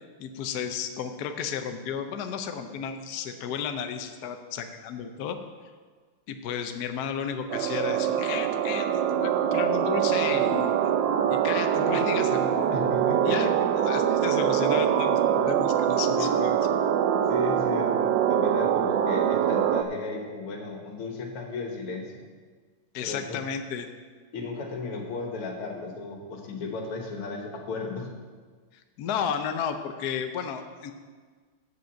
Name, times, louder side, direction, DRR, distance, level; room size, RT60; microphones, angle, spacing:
voice 1, 0.2-5.4 6.3-10.7 11.3-12.7 13.2-13.5 13.8-16.6 22.9-23.9 29.0-30.9, left 7 dB, 65° left, 6 dB, 1.0 m, -33 dB
sound 1, 7.5-19.8, right 9 dB, 75° right, 1.1 m, -24 dB
voice 2, 12.7-13.4 16.2-16.3 17.3-22.1 23.0-23.4 24.3-28.1, left 3 dB, 80° left, 2 dB, 2.3 m, -34 dB
7.9 x 7.8 x 7.0 m, 1.5 s
omnidirectional pair, 2.4 m